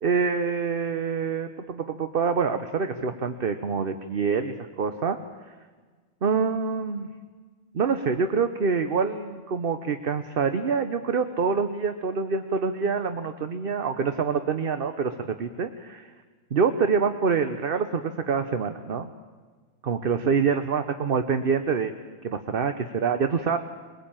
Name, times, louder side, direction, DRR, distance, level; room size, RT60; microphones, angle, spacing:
voice 1, 0.0-5.2 6.2-7.1 7.7-16.1 16.5-19.1 19.8-21.9 22.2-23.6, right 5 dB, 45° right, 9 dB, 1.0 m, -26 dB
23.5 x 20.0 x 8.9 m, 1.4 s
omnidirectional pair, 1.5 m